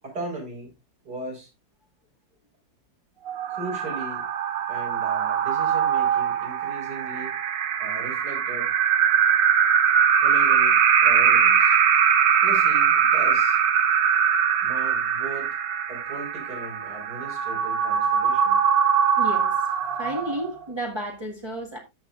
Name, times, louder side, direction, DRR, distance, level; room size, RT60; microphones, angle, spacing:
voice 1, 0.0-0.7 1.0-1.5 3.5-4.2 4.7-7.3 7.8-8.7 10.2-11.8 12.4-13.6 14.6-15.5 15.9-18.6, right 2 dB, 65° right, 5.1 m, -37 dB
sound 1, 3.3-20.6, right 8 dB, 80° right, 1.8 m, -22 dB
voice 2, 19.2-19.5 20.0-21.8, right 1 dB, 15° right, 1.8 m, -32 dB
13.5 x 7.5 x 2.5 m
omnidirectional pair, 1.9 m